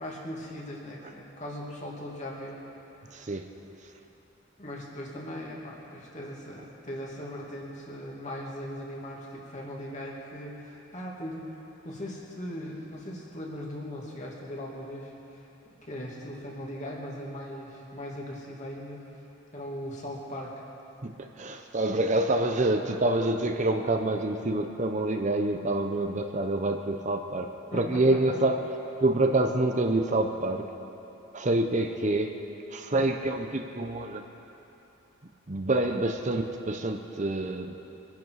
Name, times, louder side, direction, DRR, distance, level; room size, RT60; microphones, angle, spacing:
voice 1, 0.0-2.7 4.6-19.1 19.5-20.5 27.7-28.4, equal, 35° left, -3 dB, 2.5 m, -39 dB
voice 2, 3.1-3.5 21.0-28.6 29.0-30.7 31.3-32.4 32.7-34.2 35.5-37.7, right 2 dB, 40° right, 5 dB, 0.7 m, -27 dB
23.5 x 10.5 x 4.8 m, 3.0 s
head